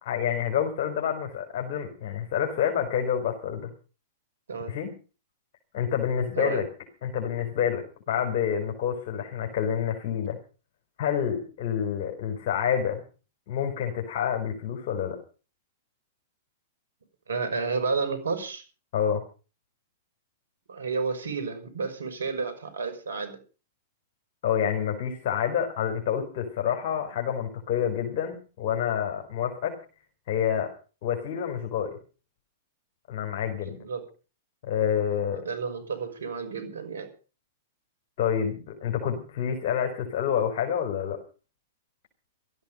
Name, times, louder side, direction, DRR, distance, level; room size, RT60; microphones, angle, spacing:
voice 1, 0.0-3.7 4.6-4.9 5.7-6.7 7.0-10.4 11.0-13.0 13.5-15.2 18.9-19.2 24.4-29.7 30.3-30.7 31.0-32.0 33.1-33.8 34.6-35.4 38.2-41.2, left 8 dB, 55° left, 3 dB, 4.4 m, -28 dB
voice 2, 17.3-18.6 20.7-23.4 33.6-34.0 35.2-37.1, right 4 dB, 80° right, 10 dB, 5.7 m, -31 dB
17.5 x 13.5 x 5.2 m, 0.36 s
hypercardioid pair, 110°, 0 cm